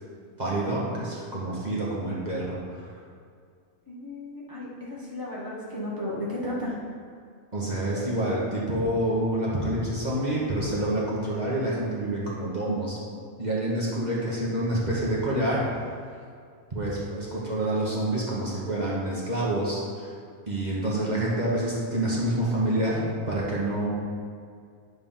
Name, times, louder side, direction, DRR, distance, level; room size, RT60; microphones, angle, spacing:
voice 1, 0.4-2.9 7.5-13.0 13.4-15.6 16.7-20.1 20.5-23.9, right 1 dB, 35° right, -6 dB, 1.4 m, -27 dB
voice 2, 3.9-6.8, left 1 dB, 15° left, -6 dB, 1.1 m, -34 dB
9.6 x 3.5 x 5.6 m, 2.2 s
omnidirectional pair, 1.4 m